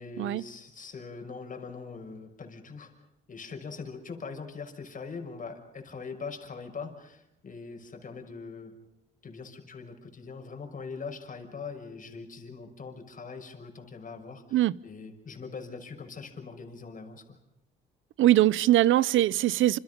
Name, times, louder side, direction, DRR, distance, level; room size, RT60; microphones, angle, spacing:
voice 1, 0.0-2.9 3.3-8.7 9.2-17.4, left 4 dB, 40° left, 6.2 m, -42 dB
voice 2, 18.2-19.8, right 14 dB, 80° right, 0.9 m, -22 dB
28.5 x 28.5 x 5.5 m
cardioid pair, 90°, 20 cm